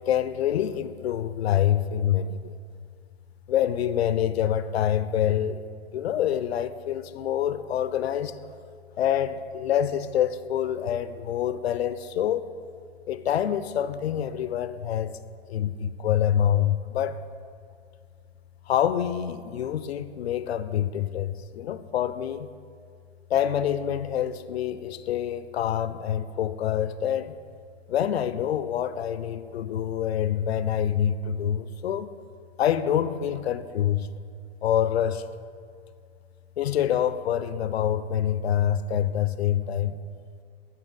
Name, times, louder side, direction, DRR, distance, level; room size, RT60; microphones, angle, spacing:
voice 1, 0.0-2.5 3.5-5.7 5.9-8.4 9.0-12.5 13.1-15.2 15.5-17.2 18.7-22.5 23.3-27.4 27.9-32.1 32.6-34.1 34.6-35.2 36.6-40.0, left 10 dB, 80° left, 0.5 m, -26 dB
11.0 x 4.4 x 3.8 m
hypercardioid pair, 115°, 31 cm